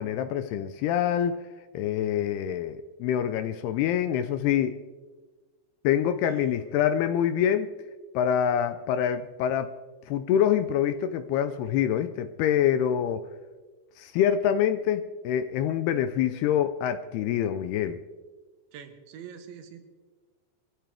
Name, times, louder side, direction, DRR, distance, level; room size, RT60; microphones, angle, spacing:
voice 1, 0.0-1.4 1.7-4.8 5.8-7.7 8.1-9.8 10.1-13.3 14.0-18.0, left 9 dB, 80° left, 11 dB, 2.4 m, -26 dB
voice 2, 6.2-6.7 18.7-19.9, right 8 dB, 90° right, 7 dB, 3.6 m, -45 dB
24.5 x 14.5 x 3.5 m, 1.3 s
omnidirectional pair, 5.0 m